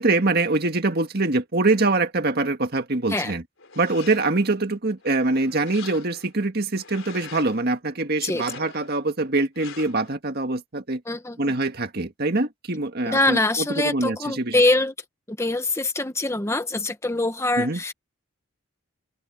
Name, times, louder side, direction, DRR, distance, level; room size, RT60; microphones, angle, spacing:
voice 1, 0.0-3.4 3.8-11.0 11.4-14.6 17.6-17.8, right 2 dB, 50° right, 1.9 m, -24 dB
sound 1, 3.6-4.5 5.0-6.3 6.7-7.6 8.2-9.0 9.5-10.1, left 6 dB, 65° left, 4.3 m, -43 dB
voice 2, 11.1-11.4 13.1-14.9 15.3-17.9, left 2 dB, 15° left, 0.9 m, -23 dB
head